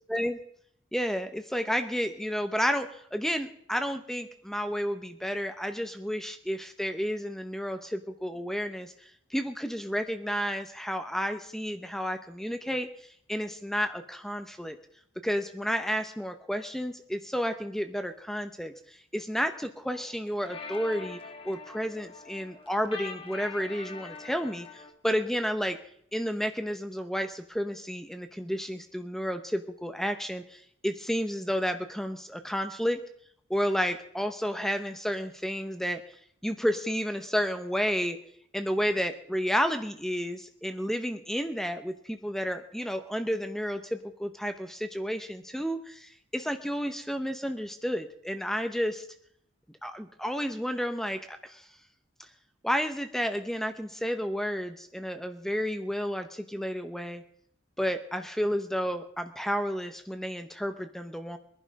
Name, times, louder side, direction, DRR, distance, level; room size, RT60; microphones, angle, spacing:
voice 1, 0.1-0.4 0.9-12.9 13.3-14.8 15.2-21.2 21.4-25.8 26.1-33.0 33.5-36.0 36.4-38.2 38.5-49.1 49.8-51.7 52.6-57.2 57.8-61.4, equal, ahead, 8 dB, 0.8 m, -31 dB
sound 1, 19.9-24.9, left 4 dB, 30° left, 1.3 m, -44 dB
22.0 x 11.0 x 5.2 m, 0.66 s
head